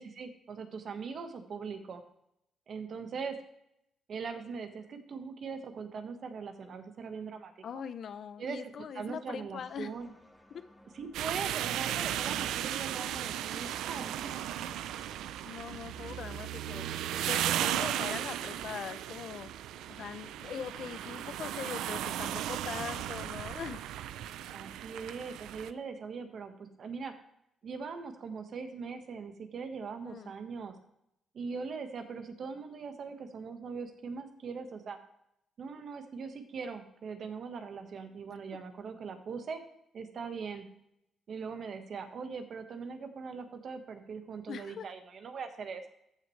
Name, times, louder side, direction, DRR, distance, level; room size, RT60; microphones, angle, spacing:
voice 1, 0.0-2.0 2.7-3.4 4.1-7.5 8.4-10.1 10.9-14.5 15.9-16.2 24.5-27.1 27.6-30.7 31.3-35.0 35.6-39.6 39.9-40.6 41.3-45.9, right 5 dB, 55° right, 7 dB, 1.4 m, -41 dB
voice 2, 7.6-9.9 10.5-10.6 15.4-16.9 17.3-19.5 19.9-23.8 30.0-30.3 44.5-44.9, left 7 dB, 60° left, 13 dB, 0.6 m, -41 dB
sound 1, 9.6-18.7, left 1 dB, 5° left, 1.6 m, -59 dB
sound 2, 11.1-25.7, right 11 dB, 85° right, 0.4 m, -36 dB
14.5 x 6.2 x 3.3 m, 0.79 s
cardioid pair, 90°, 0 cm